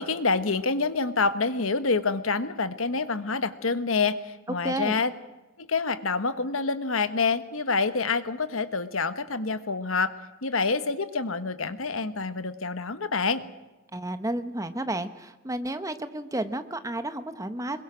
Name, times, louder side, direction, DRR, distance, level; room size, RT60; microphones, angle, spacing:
voice 1, 0.0-5.1 5.6-10.2 10.4-13.4, left 4 dB, 90° left, 11 dB, 1.4 m, -27 dB
voice 2, 4.6-5.0 13.9-17.8, right 1 dB, 15° right, 10 dB, 1.1 m, -32 dB
26.0 x 22.0 x 6.3 m, 1.1 s
head